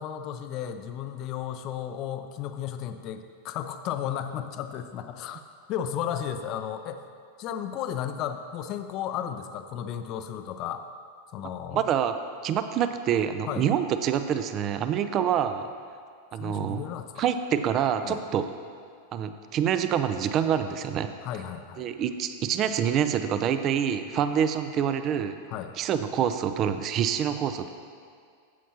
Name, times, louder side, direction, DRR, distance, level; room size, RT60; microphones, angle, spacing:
voice 1, 0.0-5.4 5.7-7.0 7.4-10.8 11.3-11.8 13.5-13.7 16.4-17.3 18.0-18.2 21.2-21.9 25.5-25.7, left 9 dB, 40° left, 9 dB, 0.6 m, -34 dB
voice 2, 11.7-12.1 12.4-15.7 16.3-16.8 17.2-18.4 19.1-21.1 21.8-25.3 25.8-27.7, right 8 dB, 35° right, 10 dB, 0.5 m, -26 dB
13.5 x 8.3 x 2.9 m, 2.2 s
figure-of-eight pair, 90°, 0 cm